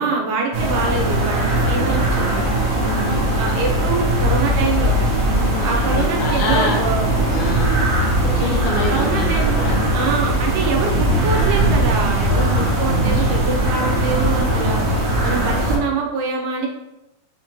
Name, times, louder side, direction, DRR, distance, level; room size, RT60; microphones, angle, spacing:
voice 1, 0.0-2.5 3.4-4.9 5.6-7.1 8.9-9.6 9.9-14.8 15.2-16.7, right 4 dB, 85° right, 0 dB, 2.7 m, -24 dB
sound 1, 0.5-11.5, right 1 dB, 60° left, 2.0 m, -40 dB
sound 2, 0.5-15.8, right 1 dB, 70° right, 1.5 m, -19 dB
voice 2, 2.8-3.3 5.3-6.8 7.3-7.8 8.2-9.3 9.5-9.8 12.3-12.7, left 3 dB, 80° left, -1 dB, 2.3 m, -26 dB
6.3 x 2.8 x 2.9 m, 0.94 s
omnidirectional pair, 4.7 m